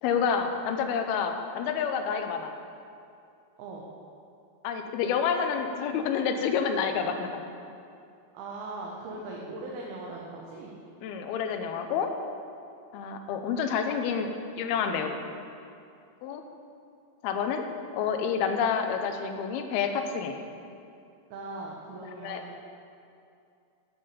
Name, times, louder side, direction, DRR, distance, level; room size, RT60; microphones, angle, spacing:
voice 1, 0.0-2.5 4.6-7.4 11.0-12.1 12.9-15.2 16.2-16.4 17.2-17.6 17.9-20.4 22.2-22.4, left 6 dB, 90° left, 6 dB, 2.6 m, -28 dB
voice 2, 8.3-10.8 21.3-22.5, right 2 dB, 80° right, -2 dB, 2.9 m, -39 dB
11.5 x 5.8 x 6.9 m, 2.5 s
omnidirectional pair, 4.4 m